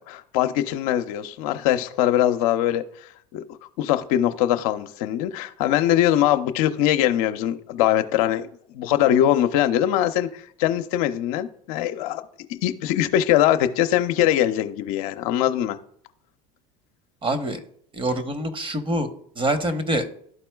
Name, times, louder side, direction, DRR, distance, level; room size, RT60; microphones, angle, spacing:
voice 1, 0.1-2.8 3.3-3.4 3.8-8.5 8.7-12.2 12.5-15.8, left 12 dB, 70° left, 7 dB, 0.6 m, -22 dB
voice 2, 17.2-17.6 17.9-19.1 19.4-20.1, right 1 dB, 25° right, 9 dB, 1.1 m, -25 dB
12.5 x 4.2 x 2.3 m, 0.64 s
hypercardioid pair, 90°, 20 cm